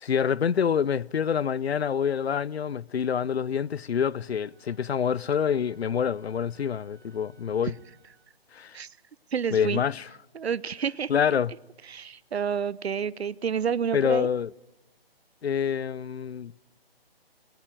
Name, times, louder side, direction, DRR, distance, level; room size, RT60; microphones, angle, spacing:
voice 1, 0.0-7.7 8.5-8.8 9.5-10.0 11.1-11.5 13.9-14.5 15.4-16.5, left 7 dB, 80° left, 0.7 m, -26 dB
Wind instrument woodwind instrument, 4.2-8.3, right 5 dB, 20° right, 2.4 m, -64 dB
voice 2, 9.3-9.8 10.3-11.1 11.8-14.3, right 7 dB, 85° right, 0.8 m, -29 dB
19.5 x 19.0 x 9.1 m
hypercardioid pair, 175°, 31 cm